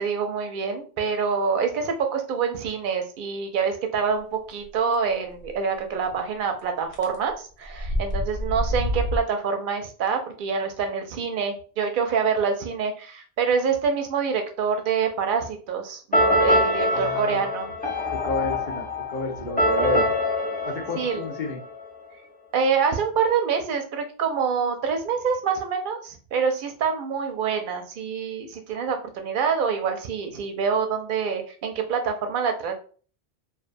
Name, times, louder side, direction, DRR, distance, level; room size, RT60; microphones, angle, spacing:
voice 1, 0.0-17.7 20.9-21.2 22.5-32.7, right 6 dB, 60° right, 5 dB, 0.6 m, -26 dB
sound 1, 5.5-5.6 6.9-7.2 7.6-9.2, equal, 80° left, 0.9 m, -26 dB
sound 2, 16.1-21.9, equal, 15° left, 0.4 m, -24 dB
voice 2, 16.9-17.4 18.1-20.1 20.6-21.6, left 3 dB, 55° left, 0 dB, 0.6 m, -31 dB
2.4 x 2.2 x 2.5 m, 0.40 s
omnidirectional pair, 1.1 m